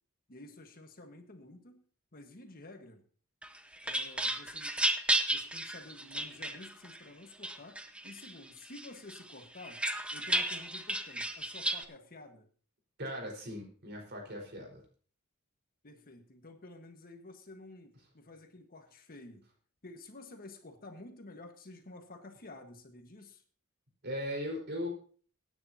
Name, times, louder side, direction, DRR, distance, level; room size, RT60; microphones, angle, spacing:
voice 1, 0.3-1.8 2.1-3.0 3.8-4.9 5.3-7.8 8.0-9.8 10.1-12.5 15.8-19.5 19.8-23.4, left 2 dB, 45° left, 5 dB, 1.5 m, -51 dB
sound 1, 3.4-7.0 7.4-8.3 8.7-11.8, right 1 dB, 5° right, 0.8 m, -33 dB
voice 2, 13.0-14.8 24.0-24.9, equal, 50° right, 1 dB, 4.7 m, -38 dB
23.5 x 9.8 x 2.8 m, 0.44 s
head